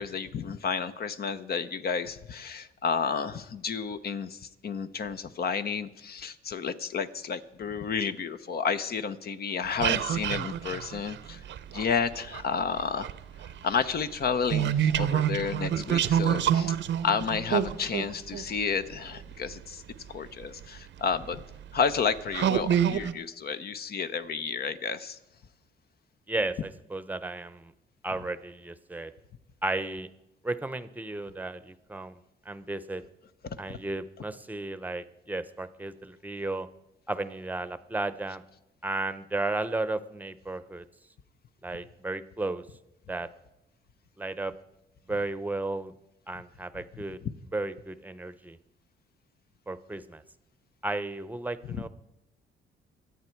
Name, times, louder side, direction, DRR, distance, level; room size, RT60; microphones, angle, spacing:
voice 1, 0.0-11.4 11.7-13.1 13.6-16.8 17.0-19.8 20.1-21.4 21.7-25.2 33.4-33.8 47.2-47.3 51.7-51.9, left 6 dB, 50° left, 11 dB, 0.8 m, -31 dB
sound 1, 9.7-12.4 12.8-19.5 20.4-20.5 21.1-21.4 21.9-22.0 22.3-23.1, right 9 dB, 70° right, 0.7 m, -27 dB
voice 2, 26.3-27.7 28.0-29.1 29.6-30.1 30.4-32.2 32.4-33.0 33.6-36.7 37.1-38.4 38.8-40.9 41.6-42.7 43.1-43.3 44.2-44.5 45.1-45.9 46.3-47.2 47.5-48.6 49.7-50.2 50.8-51.9, right 2 dB, 10° right, 14 dB, 0.8 m, -34 dB
24.0 x 8.2 x 4.6 m, 0.88 s
cardioid pair, 90°, 20 cm